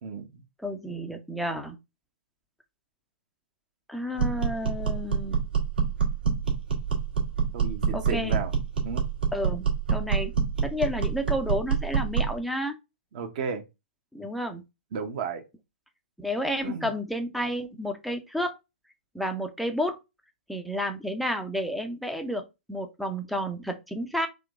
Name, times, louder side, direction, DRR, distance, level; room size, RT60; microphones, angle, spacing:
voice 1, 0.0-0.4 7.5-8.5 8.8-9.0 13.1-13.6 14.9-15.4 16.6-16.9, right 6 dB, 40° right, 0.9 m, -33 dB
voice 2, 0.6-1.8 3.9-5.4 7.9-8.4 9.3-9.6 9.9-10.3 10.6-12.8 14.1-14.6 16.2-18.6 19.1-20.0 20.5-24.3, equal, ahead, 0.5 m, -31 dB
sound 1, 4.2-12.4, right 6 dB, 60° right, 1.6 m, -26 dB
3.7 x 2.9 x 3.5 m
figure-of-eight pair, 115°, 6 cm